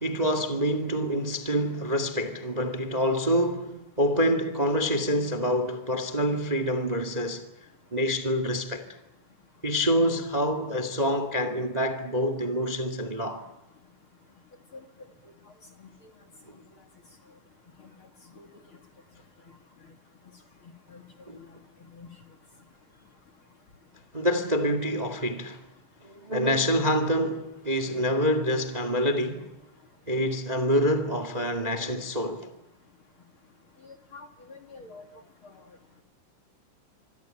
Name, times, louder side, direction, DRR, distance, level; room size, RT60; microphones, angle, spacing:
voice 1, 0.0-7.5 7.9-8.8 9.6-13.4 16.5-16.6 21.3-21.4 24.1-25.6 26.0-29.5 30.1-32.5, equal, 60° right, 0.4 m, -26 dB
voice 2, 34.1-35.0 35.4-35.5, left 4 dB, 45° left, 1.9 m, -46 dB
25.5 x 25.5 x 9.1 m
omnidirectional pair, 5.3 m